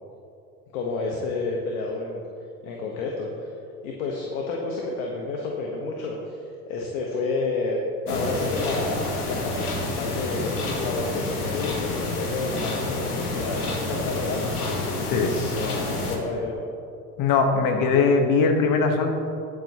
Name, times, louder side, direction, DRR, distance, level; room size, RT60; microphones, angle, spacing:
voice 1, 0.7-2.2 2.6-3.5 3.8-6.4 6.7-7.8 8.1-16.6, left 3 dB, 65° left, -1 dB, 1.5 m, -30 dB
sound 1, 8.1-16.2, left 2 dB, 85° left, 1.6 m, -29 dB
voice 2, 17.2-19.2, left 4 dB, 45° left, 5 dB, 1.6 m, -20 dB
20.0 x 7.5 x 3.1 m, 2.6 s
hypercardioid pair, 75°, 45 cm